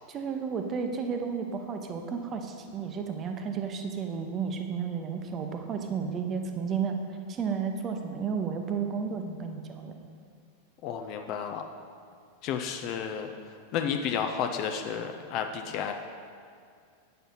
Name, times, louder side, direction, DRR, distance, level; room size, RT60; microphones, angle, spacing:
voice 1, 0.1-7.0 7.3-9.9, right 6 dB, 30° right, 5 dB, 0.8 m, -32 dB
voice 2, 10.8-11.6 12.4-13.3 13.7-15.9, left 7 dB, 40° left, 5 dB, 0.5 m, -31 dB
8.9 x 6.6 x 4.0 m, 2.3 s
figure-of-eight pair, 90°, 0 cm